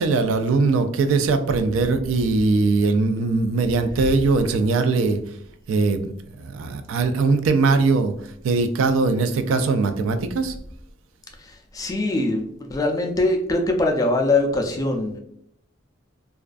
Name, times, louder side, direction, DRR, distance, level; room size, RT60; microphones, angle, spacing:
voice 1, 0.0-5.2 5.7-6.0 6.4-8.1 8.4-10.5, right 3 dB, 85° right, 8 dB, 0.3 m, -20 dB
voice 2, 11.4-15.2, left 2 dB, 20° left, 3 dB, 0.3 m, -23 dB
2.4 x 2.2 x 2.3 m, 0.72 s
head